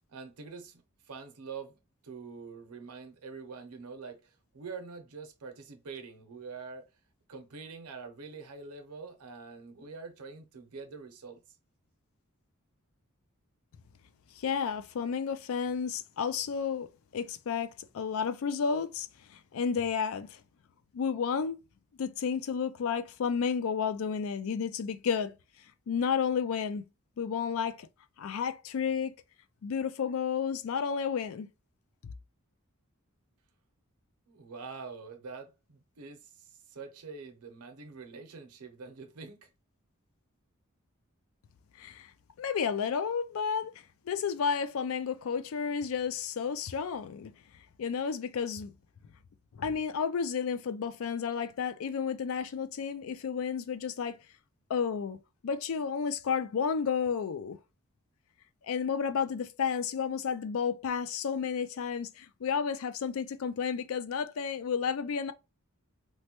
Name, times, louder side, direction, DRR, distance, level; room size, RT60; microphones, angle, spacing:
voice 1, 0.1-6.9 7.3-11.4 34.3-39.5, right 4 dB, 90° right, 0.7 m, -45 dB
voice 2, 14.4-16.9 17.1-20.4 20.9-21.6 22.0-25.3 25.9-26.9 27.2-27.9 28.2-29.1 29.6-31.5 41.8-42.1 42.4-43.7 44.1-47.3 47.8-48.7 49.5-54.2 54.7-55.2 55.4-57.6 58.6-65.3, left 6 dB, 65° left, 0.4 m, -31 dB
3.1 x 2.2 x 2.9 m
head